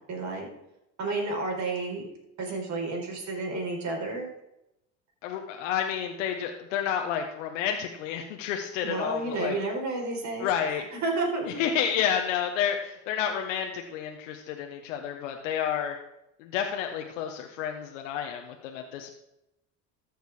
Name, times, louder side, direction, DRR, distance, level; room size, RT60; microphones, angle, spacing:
voice 1, 0.1-0.5 1.0-2.0 2.4-4.3 8.8-11.6, right 3 dB, 50° right, 1 dB, 4.3 m, -31 dB
voice 2, 5.2-9.6 10.4-10.8 11.6-16.0 16.4-19.1, left 8 dB, 85° left, 3 dB, 1.1 m, -30 dB
14.0 x 6.6 x 4.8 m, 0.84 s
supercardioid pair, 80°, 37 cm